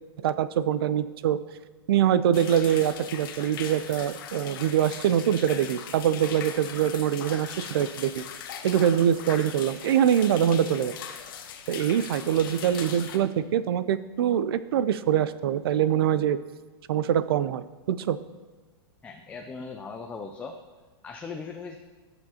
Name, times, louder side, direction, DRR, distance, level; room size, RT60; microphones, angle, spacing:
voice 1, 0.2-1.4 1.9-8.2 8.6-11.0 11.7-16.4 16.9-18.2, right 9 dB, 65° right, 15 dB, 0.5 m, -24 dB
sound 1, 2.3-13.2, left 8 dB, 55° left, 1.1 m, -40 dB
voice 2, 19.0-20.6 21.0-21.8, left 4 dB, 10° left, 3 dB, 0.4 m, -38 dB
17.5 x 7.0 x 2.9 m, 1.3 s
supercardioid pair, 160°, 13 cm